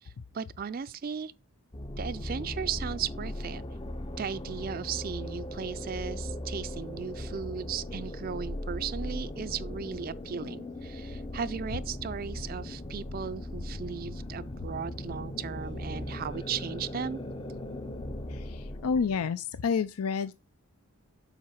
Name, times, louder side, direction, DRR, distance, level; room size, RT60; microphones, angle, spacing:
voice 1, 0.0-1.3 2.0-3.6 4.2-17.2, right 7 dB, 40° right, 0.3 m, -36 dB
sound 1, 1.7-19.2, left 1 dB, 20° left, 0.5 m, -38 dB
voice 2, 18.8-20.3, left 5 dB, 85° left, 0.5 m, -29 dB
7.3 x 4.9 x 4.6 m
head